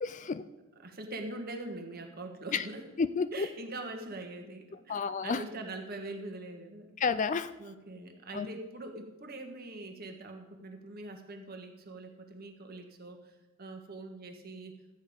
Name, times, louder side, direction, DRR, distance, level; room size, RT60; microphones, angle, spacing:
voice 1, 0.0-0.4 2.5-2.6 3.0-3.5 4.9-5.4 7.0-7.5 8.3-8.5, left 5 dB, 35° left, 13 dB, 0.3 m, -30 dB
voice 2, 0.8-2.9 3.3-6.9 7.6-14.8, right 2 dB, 45° right, 4 dB, 1.5 m, -43 dB
13.0 x 9.0 x 5.2 m, 1.1 s
head